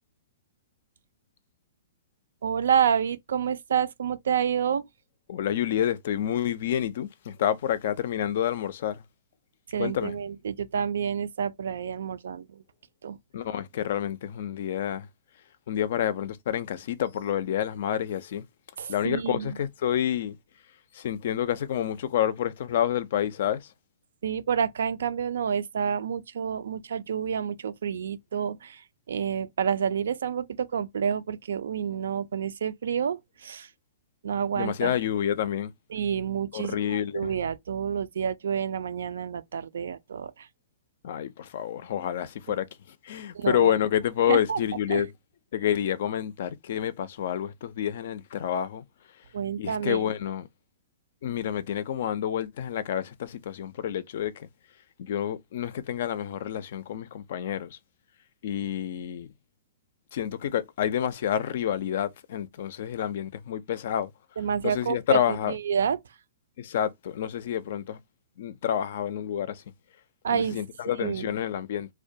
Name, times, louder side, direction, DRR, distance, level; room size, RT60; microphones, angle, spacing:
voice 1, 2.4-4.8 9.7-12.4 13.0-13.2 18.8-19.6 24.2-28.8 29.1-33.7 34.2-34.9 35.9-40.3 43.3-43.7 44.3-44.6 44.9-45.0 49.3-50.1 64.4-65.2 65.5-66.0 70.2-70.6 71.0-71.3, right 7 dB, 80° right, 0.3 m, -28 dB
voice 2, 5.3-9.0 9.8-10.2 13.3-15.1 15.7-18.4 18.9-20.4 20.9-23.6 34.6-35.7 36.5-37.3 41.0-42.7 43.0-45.1 45.5-48.8 49.6-50.5 51.2-54.5 55.0-57.8 58.4-59.3 60.1-64.1 64.6-65.6 66.6-68.0 68.4-69.6 70.3-71.9, left 10 dB, 60° left, 0.4 m, -28 dB
2.2 x 2.2 x 2.6 m
hypercardioid pair, 140°, 0 cm